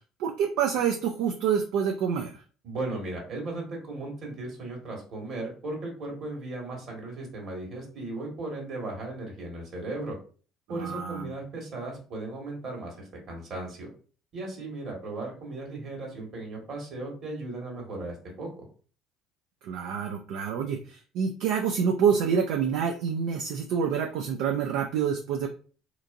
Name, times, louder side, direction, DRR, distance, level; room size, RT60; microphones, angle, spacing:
voice 1, 0.2-2.4 10.7-11.3 19.6-25.5, right 7 dB, 75° right, 3 dB, 0.3 m, -27 dB
voice 2, 2.6-10.2 10.7-13.9 14.3-18.5, right 2 dB, 55° right, 0 dB, 1.5 m, -36 dB
2.9 x 2.5 x 2.5 m, 0.40 s
hypercardioid pair, 70°, 0 cm